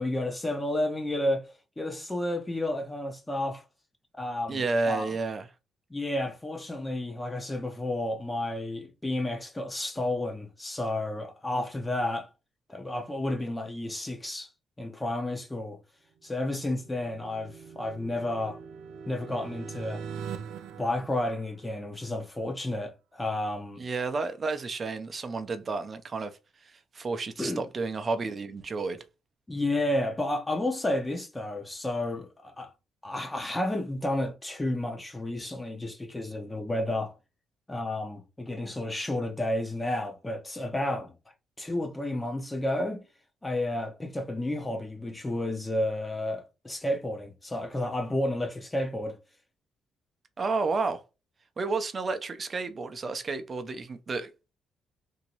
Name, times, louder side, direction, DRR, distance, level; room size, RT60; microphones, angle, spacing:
voice 1, 0.0-1.5 1.8-3.6 4.2-5.1 5.9-12.3 12.7-14.5 14.8-15.8 16.2-18.6 19.1-20.0 20.8-23.8 27.4-27.6 29.5-32.7 33.0-37.1 37.7-41.2 41.6-43.0 43.4-49.2, left 1 dB, 15° left, 0.7 m, -31 dB
voice 2, 4.5-5.4 23.8-26.4 26.6-29.0 50.4-51.0 51.6-54.5, right 3 dB, 40° right, 0.5 m, -31 dB
sound 1, 16.2-22.1, right 7 dB, 90° right, 0.4 m, -42 dB
2.9 x 2.7 x 2.9 m
cardioid pair, 90°, 0 cm